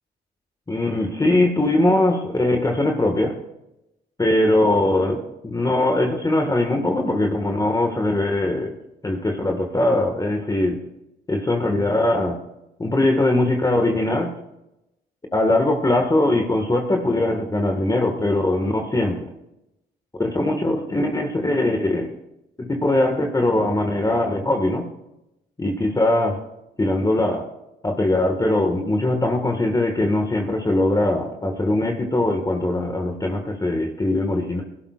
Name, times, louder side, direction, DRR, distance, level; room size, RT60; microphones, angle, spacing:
voice 1, 0.7-3.4 4.2-8.8 9.0-10.8 11.3-12.4 12.8-14.3 15.3-19.3 20.2-22.1 22.6-24.9 25.6-26.4 26.8-27.5 27.8-34.6, left 1 dB, 20° left, 3 dB, 1.7 m, -21 dB
19.5 x 12.5 x 2.5 m, 0.88 s
cardioid pair, 90°, 20 cm